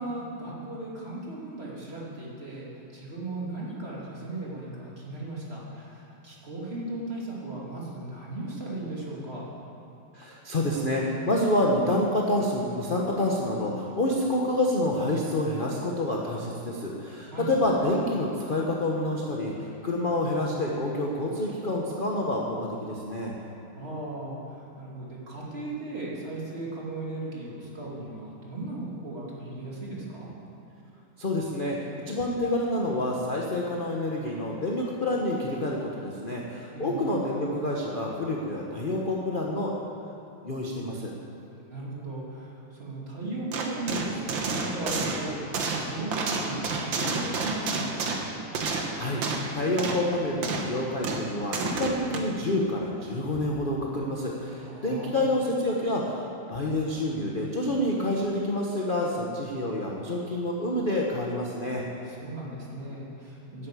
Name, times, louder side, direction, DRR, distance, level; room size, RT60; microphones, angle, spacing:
voice 1, 0.0-9.5 17.3-17.5 23.4-30.3 36.7-37.1 41.7-48.1 54.5-55.1 62.0-63.7, right 2 dB, 30° right, -5 dB, 2.8 m, -37 dB
voice 2, 10.1-23.3 31.2-31.8 32.1-39.7 40.4-41.1 48.7-49.2 49.5-61.8, left 1 dB, 35° left, -2 dB, 1.0 m, -28 dB
sound 1, 43.5-49.5 49.8-50.1 50.4-50.8 51.0-52.2, right 3 dB, 70° right, 1.9 m, -30 dB
11.0 x 9.5 x 8.4 m, 2.9 s
omnidirectional pair, 2.2 m